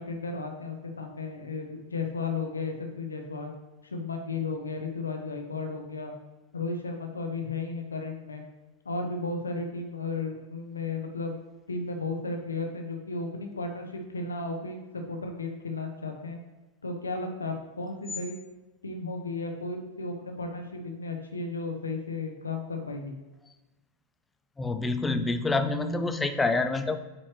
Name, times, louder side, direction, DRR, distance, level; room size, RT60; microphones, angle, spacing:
voice 1, 0.0-3.5 3.8-6.1 6.5-8.4 8.8-11.4 11.7-16.4 16.8-18.3 18.8-23.2, left 3 dB, 75° left, 4 dB, 0.9 m, -34 dB
voice 2, 24.6-27.0, left 3 dB, 10° left, 9 dB, 0.5 m, -27 dB
8.9 x 4.4 x 3.1 m, 1.1 s
figure-of-eight pair, 90°, 0 cm